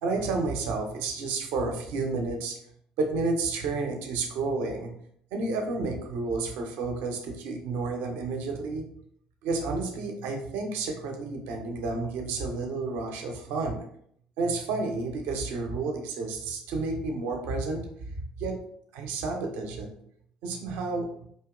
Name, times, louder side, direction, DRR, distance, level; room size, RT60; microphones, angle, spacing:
voice 1, 0.0-2.6 3.0-4.9 5.3-8.8 9.4-13.8 14.4-17.8 18.4-18.5 18.9-19.9 20.4-21.3, right 3 dB, 60° right, 3 dB, 0.7 m, -31 dB
4.3 x 2.8 x 2.3 m, 0.66 s
figure-of-eight pair, 55°, 4 cm